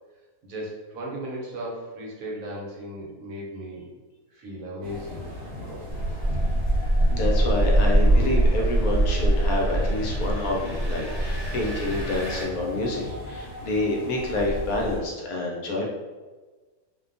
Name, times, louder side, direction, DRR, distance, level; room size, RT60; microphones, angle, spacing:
voice 1, 0.4-3.9 4.3-5.2 5.6-5.8, right 1 dB, 70° right, -4 dB, 1.0 m, -36 dB
sound 1, 4.8-15.0, left 1 dB, 55° right, 1.0 m, -36 dB
Engine, 5.9-12.4, right 1 dB, 35° left, 0.7 m, -23 dB
voice 2, 7.1-15.8, left 2 dB, 75° left, -1 dB, 1.0 m, -28 dB
2.6 x 2.1 x 2.5 m, 1.3 s
omnidirectional pair, 1.6 m